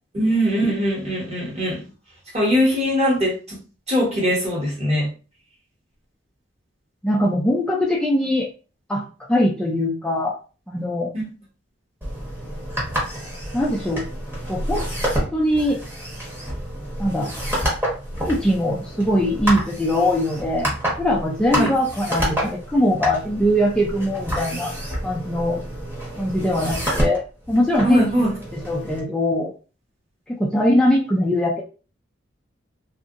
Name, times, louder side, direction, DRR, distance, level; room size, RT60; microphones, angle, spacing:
voice 1, 0.1-1.8 2.3-3.6 3.9-5.1 11.1-11.3 21.5-21.7 27.8-28.3, equal, 35° right, -4 dB, 1.3 m, -21 dB
voice 2, 7.0-8.5 8.9-10.3 10.7-11.1 13.5-14.0 14.5-14.8 15.3-15.8 17.0-17.3 18.2-20.7 21.0-24.7 25.0-25.6 26.2-27.2 27.5-28.0 28.7-29.5 30.3-31.6, left 1 dB, 5° left, -3 dB, 0.4 m, -21 dB
sound 1, 12.0-29.0, equal, 10° right, 1.0 m, -28 dB
2.7 x 2.5 x 2.5 m, 0.35 s
head